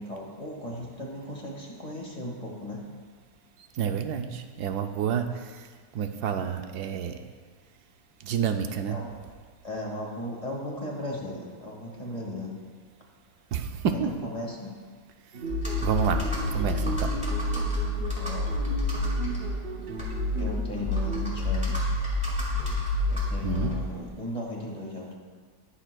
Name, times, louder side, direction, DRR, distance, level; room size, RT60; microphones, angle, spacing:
voice 1, 0.0-2.8 8.9-9.1 9.6-12.5 13.9-14.8 18.1-18.8 20.3-21.9 23.0-25.2, left 1 dB, 25° left, -3 dB, 1.7 m, -36 dB
voice 2, 3.8-5.3 5.9-7.2 8.2-9.0 13.5-14.1 15.8-16.2 16.5-17.1 23.4-23.7, right 7 dB, 80° right, 7 dB, 1.1 m, -28 dB
sound 1, 15.3-21.3, right 4 dB, 50° right, 0.7 m, -37 dB
Computer keyboard, 15.5-24.1, left 2 dB, 5° right, 1.9 m, -29 dB
19.5 x 6.7 x 2.3 m, 1.5 s
omnidirectional pair, 1.7 m